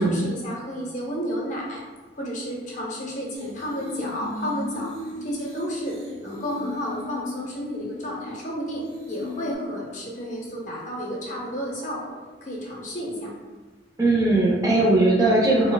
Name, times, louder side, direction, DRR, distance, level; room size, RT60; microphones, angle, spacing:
voice 1, 0.0-1.8 2.2-4.9 5.2-13.3, equal, 40° left, -3 dB, 0.7 m, -32 dB
sound 1, 3.3-8.5 8.8-9.6, left 2 dB, 35° right, 1.1 m, -37 dB
voice 2, 14.0-15.7, right 2 dB, 20° right, -5 dB, 0.5 m, -19 dB
4.6 x 2.1 x 2.3 m, 1.3 s
head